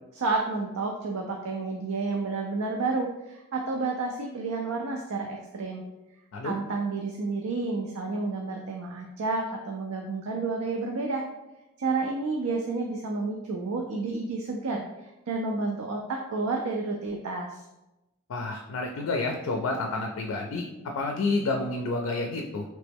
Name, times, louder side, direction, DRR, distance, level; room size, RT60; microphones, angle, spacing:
voice 1, 0.1-5.8 6.4-11.2 11.8-14.8 15.3-17.6, right 3 dB, 85° right, 1 dB, 0.4 m, -30 dB
voice 2, 18.3-20.6 20.9-22.6, left 3 dB, 70° left, 2 dB, 0.4 m, -29 dB
3.2 x 3.0 x 3.4 m, 0.98 s
head